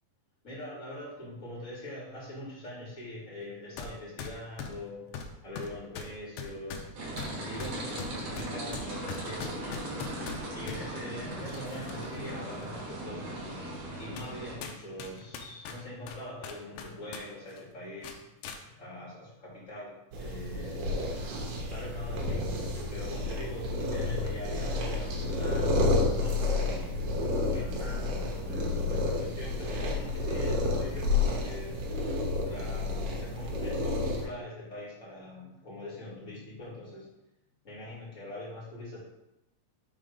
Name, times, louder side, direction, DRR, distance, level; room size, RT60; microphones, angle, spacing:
voice 1, 0.4-5.1 5.4-6.9 7.4-13.4 14.0-18.2 18.6-20.9 21.7-22.6 22.9-26.9 27.5-32.1 32.3-37.1 37.6-39.0, left 1 dB, 25° left, -7 dB, 2.4 m, -43 dB
sound 1, 3.8-3.9 4.2-10.8 11.4-12.2 12.6-12.7 13.4-13.5 14.2-14.3 14.6-17.2 17.5-17.6 18.0-18.6, left 6 dB, 85° left, 2.4 m, -41 dB
sound 2, 6.9-14.5, right 1 dB, 55° right, 2.4 m, -38 dB
sound 3, 20.1-34.2, left 2 dB, 85° right, 2.9 m, -30 dB
6.7 x 3.8 x 5.0 m, 0.88 s
omnidirectional pair, 4.0 m